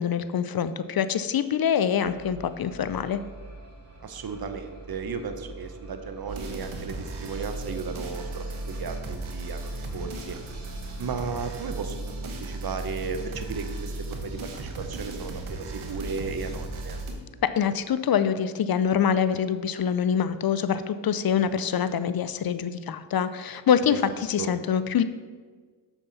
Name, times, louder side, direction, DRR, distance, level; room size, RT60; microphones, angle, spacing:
voice 1, 0.0-3.2 17.4-25.0, left 8 dB, 50° left, 13 dB, 0.6 m, -25 dB
sound 1, 2.0-12.2, right 2 dB, 30° right, 2.1 m, -46 dB
voice 2, 4.0-10.4 11.0-17.0 23.9-24.0 24.4-24.5, right 5 dB, 50° right, 8 dB, 1.0 m, -35 dB
sound 2, 6.3-17.1, right 2 dB, 75° right, 1.4 m, -36 dB
7.2 x 7.0 x 4.1 m, 1.5 s
cardioid pair, 55°, 49 cm